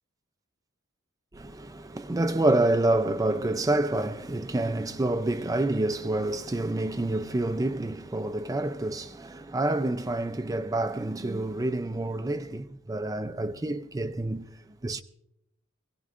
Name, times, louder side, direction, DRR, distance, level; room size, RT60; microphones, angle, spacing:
voice 1, 1.3-14.4 14.8-15.0, right 2 dB, 15° right, 0.4 m, -28 dB
23.0 x 17.5 x 2.5 m
head